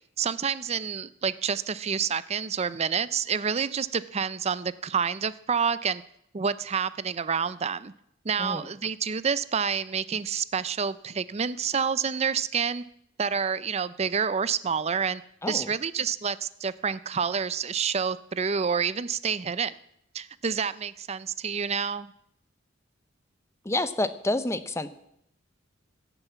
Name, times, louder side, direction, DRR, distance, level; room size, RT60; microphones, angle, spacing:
voice 1, 0.2-6.0 6.3-7.9 8.2-12.8 13.2-15.2 15.5-19.7 20.1-22.1, right 6 dB, 35° right, 16 dB, 0.5 m, -28 dB
voice 2, 23.6-24.9, left 2 dB, 15° left, 12 dB, 0.7 m, -28 dB
16.0 x 7.0 x 8.2 m, 0.75 s
head